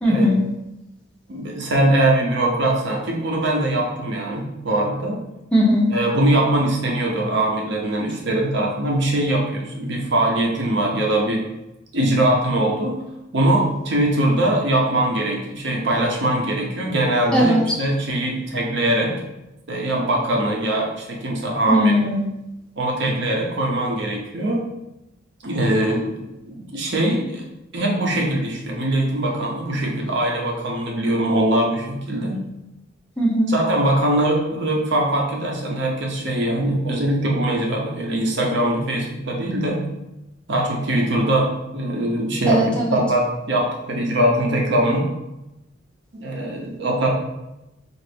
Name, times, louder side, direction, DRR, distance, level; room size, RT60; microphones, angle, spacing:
voice 1, 0.0-0.4 5.5-5.9 17.3-17.8 21.7-22.3 33.2-33.5 42.4-43.0, equal, 5° left, -5 dB, 0.8 m, -18 dB
voice 2, 1.3-5.2 5.9-11.4 11.9-13.0 13.3-19.1 19.7-21.9 22.8-24.6 25.4-27.4 27.7-32.4 33.5-39.8 40.5-42.6 42.9-45.1 46.1-47.1, right 1 dB, 60° right, -1 dB, 0.8 m, -22 dB
3.9 x 2.5 x 3.3 m, 0.92 s
head